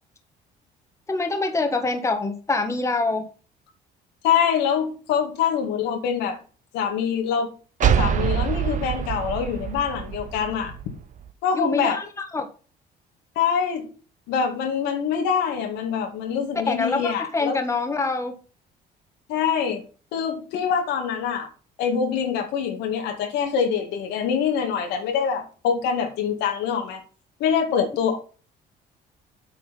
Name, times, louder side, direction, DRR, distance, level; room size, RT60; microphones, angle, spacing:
voice 1, 1.1-3.3 11.5-12.5 16.7-18.3, left 3 dB, 15° left, 5 dB, 1.5 m, -25 dB
voice 2, 4.2-6.4 6.7-7.5 7.8-10.7 11.4-12.0 13.4-13.9 14.3-17.6 19.3-19.8 20.1-21.5 21.8-27.0 27.4-28.2, left 7 dB, 90° left, 3 dB, 2.2 m, -24 dB
sound 1, 7.8-11.3, right 9 dB, 50° right, 0.8 m, -25 dB
8.4 x 4.8 x 5.4 m, 0.37 s
cardioid pair, 110°, 17 cm